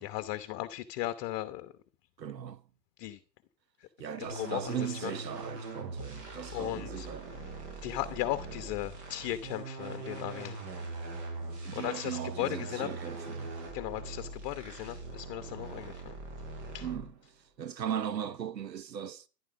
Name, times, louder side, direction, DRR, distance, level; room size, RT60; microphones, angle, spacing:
voice 1, 0.0-1.7 3.0-3.2 4.2-5.1 6.5-7.1 7.8-10.6 11.7-12.9 13.7-16.2 16.7-16.9, left 14 dB, 35° left, 1.0 m, -36 dB
voice 2, 2.2-2.6 4.0-7.3 11.6-13.5 16.8-19.3, right 9 dB, 80° right, 1.1 m, -38 dB
sound 1, 4.3-17.2, right 3 dB, 45° right, 6.6 m, -42 dB
13.0 x 11.5 x 5.0 m
hypercardioid pair, 110°, 50 cm